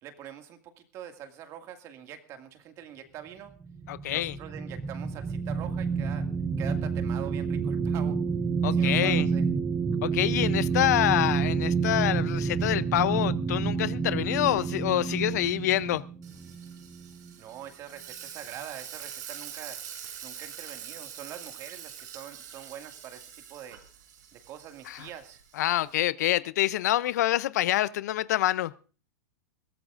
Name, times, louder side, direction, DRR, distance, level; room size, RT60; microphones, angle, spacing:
voice 1, 0.0-3.5 4.1-6.3 6.6-8.2 8.7-9.5 17.4-19.8 20.2-23.8 24.3-25.4, right 10 dB, 30° right, 2.1 m, -44 dB
sound 1, 3.6-17.3, right 5 dB, 10° right, 0.7 m, -29 dB
voice 2, 3.9-4.4 8.6-9.3 10.0-16.0 24.9-25.1 25.5-28.7, left 14 dB, 65° left, 0.6 m, -26 dB
Frying (food), 16.2-25.9, right 8 dB, 80° right, 5.4 m, -45 dB
22.0 x 16.5 x 2.5 m
supercardioid pair, 150°, 10 cm